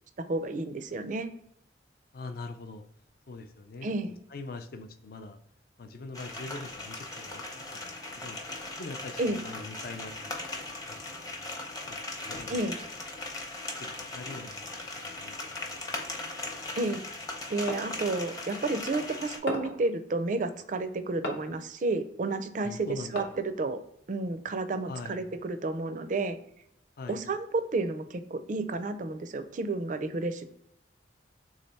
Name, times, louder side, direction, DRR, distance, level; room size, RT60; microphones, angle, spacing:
voice 1, 0.3-1.3 3.8-4.1 9.2-9.4 12.5-12.8 16.8-17.0 17.5-22.9 23.1-23.8 24.1-26.4 27.1-30.4, right 2 dB, 45° right, 10 dB, 0.4 m, -31 dB
voice 2, 2.1-2.8 3.3-5.4 5.8-8.4 8.8-10.3 10.7-11.5 11.9-12.6 13.8-14.7 14.9-15.8 22.6-23.3 24.9-25.2 27.0-27.2, left 3 dB, 55° left, 8 dB, 0.4 m, -43 dB
sound 1, 6.1-19.4, left 2 dB, 20° left, 0.7 m, -39 dB
sound 2, 17.7-18.0 19.5-19.9 21.2-21.6 23.2-23.6, left 1 dB, 75° left, 0.8 m, -36 dB
3.6 x 3.2 x 4.0 m, 0.73 s
head